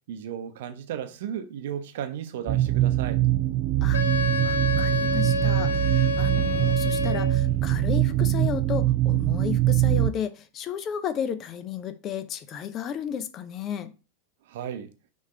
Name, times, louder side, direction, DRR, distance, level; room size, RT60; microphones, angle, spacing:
voice 1, 0.1-3.2 14.5-14.9, right 9 dB, 55° right, 0.9 m, -34 dB
sound 1, 2.5-10.1, right 14 dB, 30° right, 0.5 m, -23 dB
Wind instrument woodwind instrument, 3.9-7.5, left 3 dB, 70° left, 0.7 m, -28 dB
voice 2, 4.4-13.9, left 8 dB, 30° left, 0.7 m, -33 dB
6.3 x 3.6 x 5.5 m
figure-of-eight pair, 90°, 0 cm